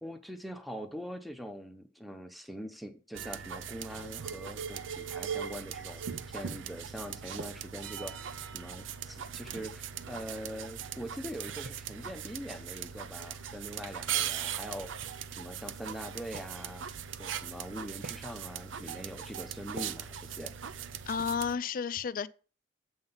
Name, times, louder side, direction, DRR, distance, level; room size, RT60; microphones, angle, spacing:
voice 1, 0.0-6.0 6.3-14.9 15.3-16.8 17.2-20.5, equal, ahead, 0.7 m, -43 dB
sound 1, 3.1-21.6, right 8 dB, 90° right, 0.5 m, -39 dB
voice 2, 21.1-22.3, left 6 dB, 45° left, 0.4 m, -32 dB
7.9 x 5.6 x 5.7 m
head